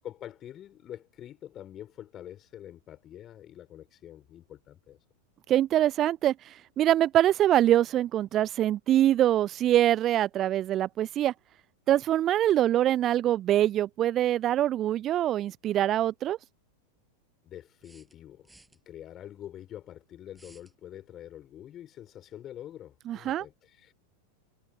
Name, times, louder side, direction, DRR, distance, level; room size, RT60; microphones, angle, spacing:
voice 1, 0.0-5.0 17.4-18.5 18.8-23.9, left 11 dB, 30° left, 4.7 m, -45 dB
voice 2, 5.5-11.3 11.9-16.4 23.1-23.4, right 12 dB, 30° right, 0.5 m, -24 dB
sound 1, 17.8-18.8 20.3-20.8, right 2 dB, 5° right, 7.3 m, -57 dB
figure-of-eight pair, 90°, 0 cm